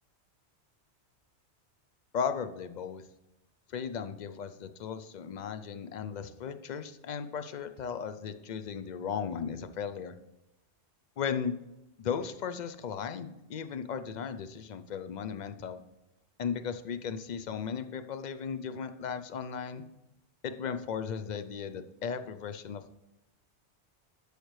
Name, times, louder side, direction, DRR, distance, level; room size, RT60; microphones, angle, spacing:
voice 1, 2.1-3.0 3.7-10.2 11.2-11.6 12.0-15.8 16.4-19.8 20.4-23.0, left 7 dB, 55° left, 10 dB, 0.5 m, -36 dB
13.0 x 5.0 x 3.1 m, 0.93 s
omnidirectional pair, 1.2 m